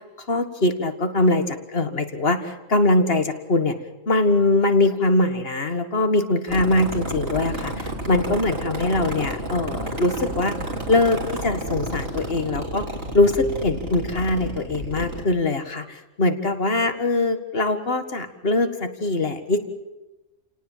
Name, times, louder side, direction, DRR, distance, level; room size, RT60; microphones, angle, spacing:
voice 1, 0.3-3.8 4.1-10.5 10.9-12.8 13.1-19.6, left 2 dB, 50° left, 8 dB, 1.9 m, -22 dB
sound 1, 6.5-15.2, right 1 dB, 50° right, 3.6 m, -31 dB
29.5 x 18.5 x 7.4 m, 1.1 s
omnidirectional pair, 1.3 m